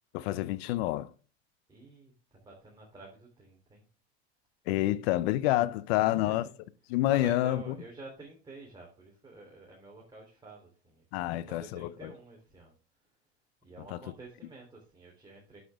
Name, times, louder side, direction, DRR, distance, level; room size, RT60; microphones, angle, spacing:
voice 1, 0.1-1.1 4.7-6.5 6.9-7.7 11.1-12.1 13.9-14.0, left 15 dB, 70° left, 0.7 m, -28 dB
voice 2, 1.7-3.8 6.0-6.5 7.1-12.7 13.6-15.6, right 2 dB, 15° right, 3.4 m, -50 dB
9.4 x 8.4 x 3.6 m
hypercardioid pair, 100°, 33 cm